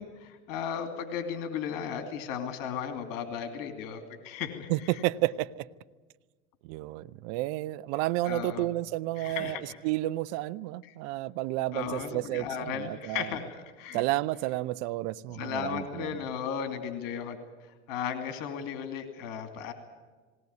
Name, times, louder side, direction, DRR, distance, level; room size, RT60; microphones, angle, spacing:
voice 1, 0.0-4.9 8.2-8.7 9.2-9.6 10.8-10.9 11.7-14.0 15.3-19.7, left 7 dB, 60° left, 2.7 m, -35 dB
voice 2, 4.7-5.7 6.6-13.3 13.9-16.2, right 16 dB, 65° right, 0.8 m, -31 dB
19.5 x 19.0 x 9.6 m
hypercardioid pair, 100°, 38 cm